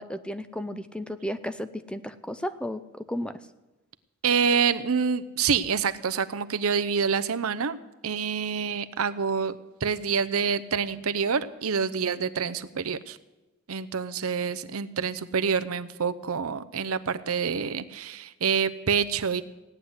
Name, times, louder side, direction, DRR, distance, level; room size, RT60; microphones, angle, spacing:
voice 1, 0.0-3.4, equal, 5° left, 12 dB, 0.5 m, -34 dB
voice 2, 4.2-7.8 8.0-9.6 9.8-13.2 13.7-19.4, right 6 dB, 80° right, 11 dB, 0.7 m, -27 dB
17.0 x 9.8 x 8.0 m, 1.1 s
head